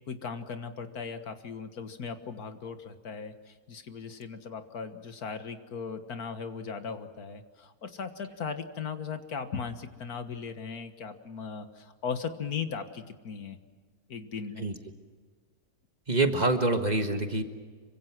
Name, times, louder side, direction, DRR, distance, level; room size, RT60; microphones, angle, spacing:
voice 1, 0.1-13.6 14.1-14.7, left 6 dB, 80° left, 8 dB, 2.0 m, -38 dB
voice 2, 16.1-17.4, right 2 dB, 30° right, 6 dB, 1.7 m, -26 dB
26.0 x 24.5 x 6.1 m, 1.5 s
omnidirectional pair, 1.6 m